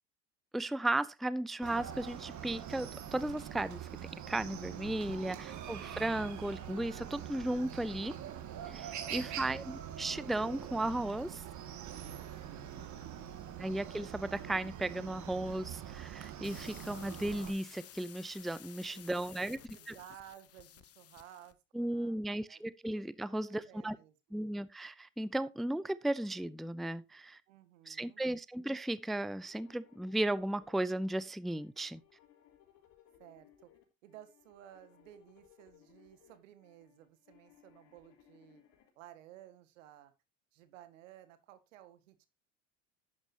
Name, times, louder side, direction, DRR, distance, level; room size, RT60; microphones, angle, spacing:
voice 1, 0.5-3.9 4.3-8.2 8.7-11.4 13.6-19.6 19.9-20.0 21.7-24.0 24.3-27.4 27.9-32.0, right 1 dB, ahead, 0.5 m, -35 dB
Chicken rooster, 1.6-17.5, right 9 dB, 50° right, 2.2 m, -44 dB
voice 2, 9.0-9.6 18.9-22.6 23.2-24.4 27.5-28.2 33.2-33.7 34.0-38.6 39.0-40.1 40.5-42.3, right 12 dB, 80° right, 1.9 m, -56 dB
sound 1, 16.4-21.6, left 11 dB, 40° left, 1.1 m, -54 dB
sound 2, 29.0-38.9, left 10 dB, 65° left, 3.9 m, -64 dB
11.0 x 9.6 x 2.8 m
hypercardioid pair, 80°, 38 cm